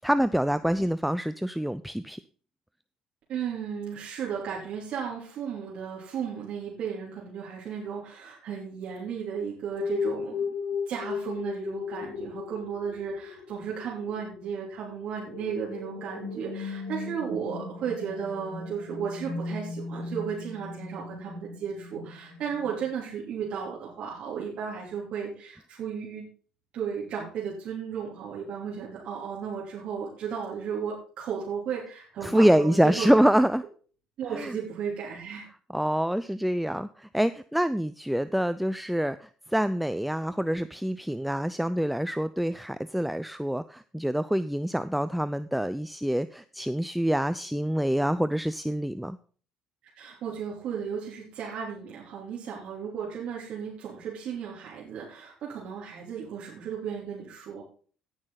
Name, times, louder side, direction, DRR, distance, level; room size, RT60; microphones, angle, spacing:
voice 1, 0.0-2.2 32.2-33.6 34.3-34.6 35.7-49.2, equal, ahead, 13 dB, 0.5 m, -26 dB
voice 2, 3.3-10.3 10.9-26.2 26.7-33.3 34.2-35.5 50.0-57.6, right 7 dB, 55° right, -4 dB, 3.3 m, -34 dB
sound 1, 9.7-22.9, left 5 dB, 65° left, 2.5 m, -36 dB
17.0 x 6.3 x 4.0 m, 0.42 s
hypercardioid pair, 55°, 2 cm